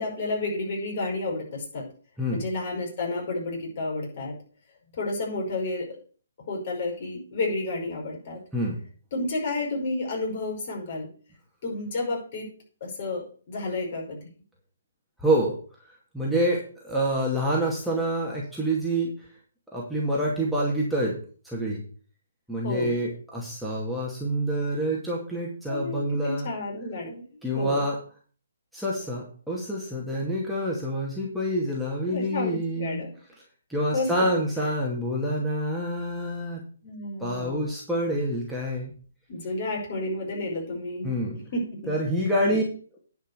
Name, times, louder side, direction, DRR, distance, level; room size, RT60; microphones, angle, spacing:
voice 1, 0.0-1.9 2.3-4.3 5.0-5.9 6.5-8.4 9.1-11.1 11.6-12.5 12.8-14.2 22.6-22.9 25.7-27.2 27.5-27.8 32.1-33.1 33.9-34.3 36.8-37.6 39.3-41.1 41.5-41.9 42.4-42.6, left 2 dB, 45° left, -1 dB, 5.7 m, -31 dB
voice 2, 15.2-15.6 16.1-19.1 19.7-21.1 21.4-21.8 22.5-26.5 27.4-28.0 28.7-33.0 33.7-36.6 37.2-38.9 41.0-41.4 41.9-42.6, equal, ahead, -5 dB, 2.3 m, -27 dB
10.0 x 5.7 x 6.9 m, 0.42 s
figure-of-eight pair, 140°, 0 cm